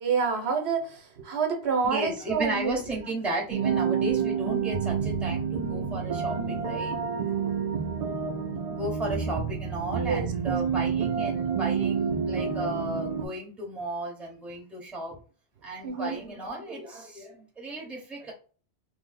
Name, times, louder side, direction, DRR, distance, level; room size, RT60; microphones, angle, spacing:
voice 1, 0.0-2.7 10.1-10.6 15.8-16.2, right 5 dB, 75° right, 3 dB, 1.0 m, -28 dB
voice 2, 1.8-7.0 8.7-15.2 15.6-18.3, right 1 dB, ahead, -2 dB, 0.7 m, -34 dB
sound 1, 3.5-13.3, right 6 dB, 50° right, 0.5 m, -28 dB
2.8 x 2.0 x 4.0 m, 0.38 s
omnidirectional pair, 1.1 m